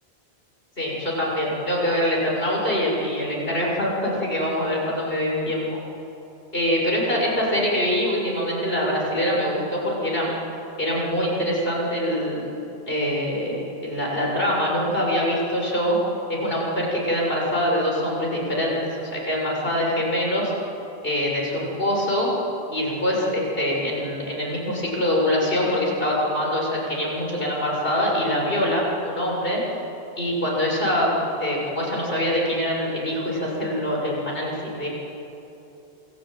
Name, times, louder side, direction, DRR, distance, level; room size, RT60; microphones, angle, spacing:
voice 1, 0.8-5.8 6.5-10.3 10.8-12.5 12.9-16.0 16.3-20.5 21.0-22.3 22.7-29.6 30.2-31.1 31.4-34.9, equal, 60° left, -3 dB, 6.9 m, -24 dB
27.5 x 19.5 x 9.3 m, 3.0 s
omnidirectional pair, 1.1 m